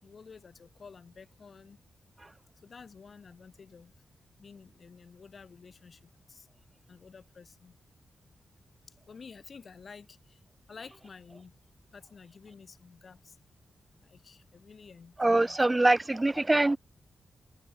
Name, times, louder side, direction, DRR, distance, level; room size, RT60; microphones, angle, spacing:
voice 1, 0.0-1.8 2.6-3.9 4.4-6.5 6.9-7.8 8.9-10.4 10.7-11.6 11.9-13.5 14.0-15.9, left 5 dB, 45° left, 4.1 m, -51 dB
voice 2, 15.2-16.8, right 2 dB, 15° right, 0.4 m, -24 dB
wide cardioid pair, 145°, 0 cm